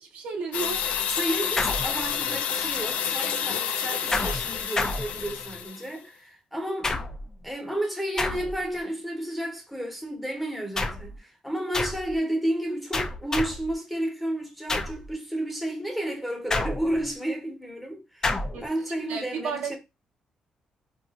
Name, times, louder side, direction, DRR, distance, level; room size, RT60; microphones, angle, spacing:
voice 1, 0.1-1.0 18.5-18.7 19.1-19.8, right 5 dB, 85° right, 0.8 m, -32 dB
sound 1, 0.5-5.9, left 8 dB, 90° left, 0.4 m, -29 dB
voice 2, 1.1-6.9 7.4-18.3 18.6-19.8, right 1 dB, ahead, 0.9 m, -31 dB
sound 2, 1.6-2.4 4.1-5.6 6.8-7.4 8.2-8.8 10.8-11.2 11.7-12.2 12.9-13.7 14.7-15.1 16.5-17.1 18.2-18.7, left 2 dB, 25° left, 0.4 m, -30 dB
3.9 x 2.4 x 2.4 m
cardioid pair, 115°, 2 cm